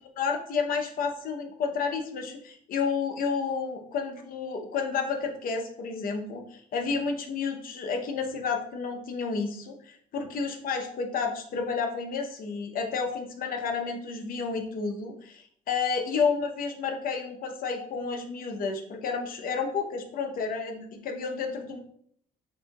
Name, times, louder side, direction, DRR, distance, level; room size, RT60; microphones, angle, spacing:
voice 1, 0.2-21.8, left 5 dB, 55° left, 3 dB, 0.8 m, -31 dB
6.9 x 2.7 x 2.3 m, 0.65 s
cardioid pair, 110°, 17 cm